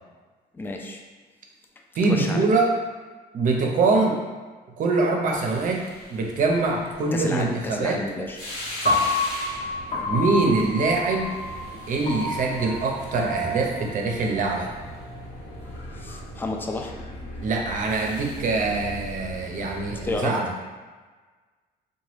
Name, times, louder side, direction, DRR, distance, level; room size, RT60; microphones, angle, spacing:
voice 1, 0.5-1.0 2.1-2.4 7.1-8.4 9.9-10.1 15.9-17.0 20.0-20.4, left 2 dB, 10° left, 1 dB, 0.3 m, -31 dB
voice 2, 2.0-2.7 3.3-4.2 4.8-5.8 6.1-8.0 8.8-9.1 10.1-11.3 11.9-14.7 17.4-20.5, right 3 dB, 50° right, 1 dB, 0.6 m, -23 dB
sound 1, 5.3-20.2, left 1 dB, 85° left, 1.0 m, -39 dB
Piano, 8.9-15.0, left 1 dB, 50° left, 0.7 m, -29 dB
2.9 x 2.2 x 3.1 m, 1.4 s
cardioid pair, 110°, 17 cm